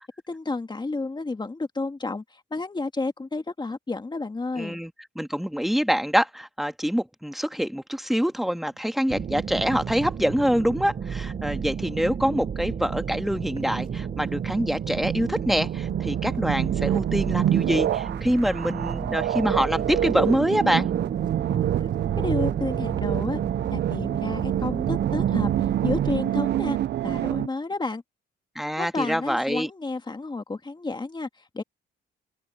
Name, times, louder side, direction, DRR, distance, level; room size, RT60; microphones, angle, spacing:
voice 1, 0.3-4.8 21.5-21.9 22.2-23.4 23.7-25.5 25.8-26.8 27.0-28.0 28.8-31.3 31.5-31.6, left 3 dB, 20° left, 2.1 m, -31 dB
voice 2, 4.6-20.9 28.6-29.7, equal, ahead, 1.7 m, -25 dB
sound 1, 9.1-26.2, right 7 dB, 40° right, 0.9 m, -32 dB
sound 2, 11.0-27.5, right 12 dB, 60° right, 0.5 m, -27 dB
sound 3, 13.6-15.4 15.6-18.0 18.3-18.6 18.9-21.3 21.6-22.7 23.0-23.3 23.6-24.1 24.3-25.3 25.6-26.1 26.3-26.5, right 3 dB, 25° right, 2.8 m, -50 dB
open air
cardioid pair, 90°, 20 cm